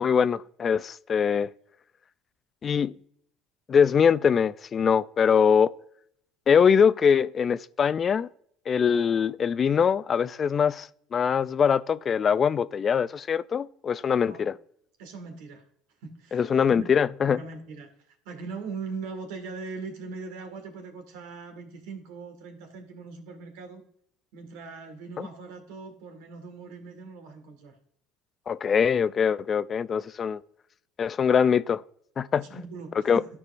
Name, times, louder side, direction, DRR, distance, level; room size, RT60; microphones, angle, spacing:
voice 1, 0.0-1.5 2.6-2.9 3.7-5.7 6.5-8.3 8.7-14.5 16.3-17.4 25.2-25.3 28.5-30.4 31.0-31.8 32.2-32.4 33.1-33.2, left 7 dB, 35° left, 0.3 m, -23 dB
voice 2, 15.0-15.6 16.0-16.9 17.2-23.8 24.3-27.8 32.4-33.3, right 4 dB, 80° right, 1.8 m, -40 dB
13.0 x 4.7 x 2.5 m
supercardioid pair, 100°, 0 cm